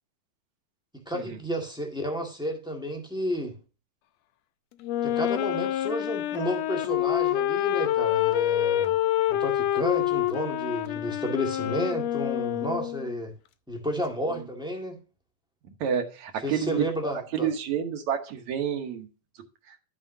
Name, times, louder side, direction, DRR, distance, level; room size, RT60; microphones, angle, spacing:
voice 1, 1.0-3.5 5.0-9.0 9.3-13.3 13.7-15.0 16.4-17.5, equal, 5° right, 1.0 m, -31 dB
Wind instrument woodwind instrument, 4.8-13.2, left 12 dB, 80° left, 1.5 m, -27 dB
voice 2, 15.8-19.1 19.7-19.8, right 8 dB, 70° right, 2.3 m, -29 dB
11.0 x 7.3 x 2.7 m
omnidirectional pair, 3.6 m